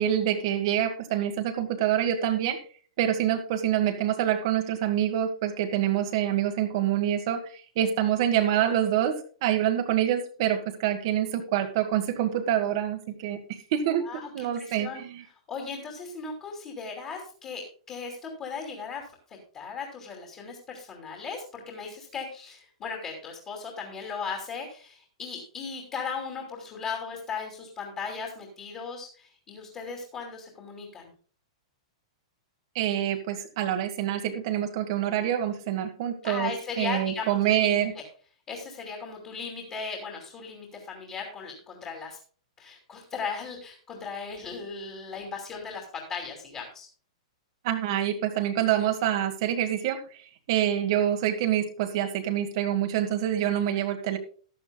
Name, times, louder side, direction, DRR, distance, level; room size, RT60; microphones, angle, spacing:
voice 1, 0.0-2.6 3.0-7.5 7.7-14.1 14.3-15.2 32.7-36.5 36.8-37.9 47.6-50.0 50.5-54.2, right 11 dB, 45° right, 5 dB, 1.6 m, -26 dB
voice 2, 14.0-15.0 15.5-19.0 19.3-31.1 36.2-37.8 38.5-42.2 42.6-46.9, left 5 dB, 20° left, 1 dB, 2.7 m, -37 dB
14.5 x 11.5 x 2.3 m, 0.40 s
hypercardioid pair, 165°, 3 cm